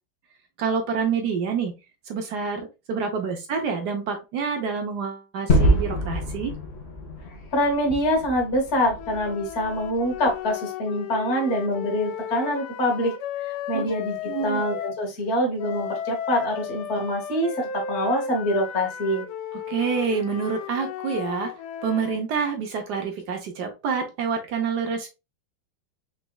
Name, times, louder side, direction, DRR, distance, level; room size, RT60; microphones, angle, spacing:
voice 1, 0.6-1.7 2.1-6.5 13.7-13.9 14.3-14.6 19.7-21.5 21.8-25.1, right 6 dB, 65° right, 4 dB, 1.1 m, -27 dB
Gunshot gunfire / Fireworks / Boom, 5.5-10.3, equal, 70° left, 0.6 m, -26 dB
voice 2, 7.5-13.1 13.4-14.2 14.4-19.2, equal, 40° left, 2 dB, 1.1 m, -25 dB
sound 1, 8.9-15.0 15.6-22.2, left 8 dB, 90° left, 1.5 m, -34 dB
4.1 x 3.4 x 2.2 m, 0.26 s
omnidirectional pair, 2.3 m